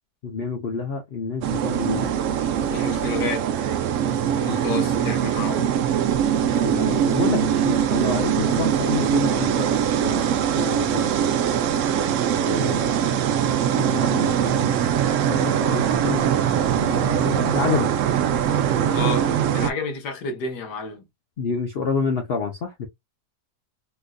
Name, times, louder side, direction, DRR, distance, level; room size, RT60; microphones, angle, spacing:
voice 1, 0.2-2.1 4.5-4.6 6.4-9.8 10.0-11.0 12.5-13.3 13.8-14.7 15.3-16.3 16.7-17.9 21.4-22.9, left 5 dB, 55° left, 0.7 m, -28 dB
sound 1, 1.4-19.7, right 9 dB, 70° right, 0.8 m, -22 dB
voice 2, 2.7-3.5 4.4-5.7 18.9-21.0, left 4 dB, 85° left, 1.7 m, -30 dB
4.3 x 2.5 x 2.2 m
omnidirectional pair, 1.7 m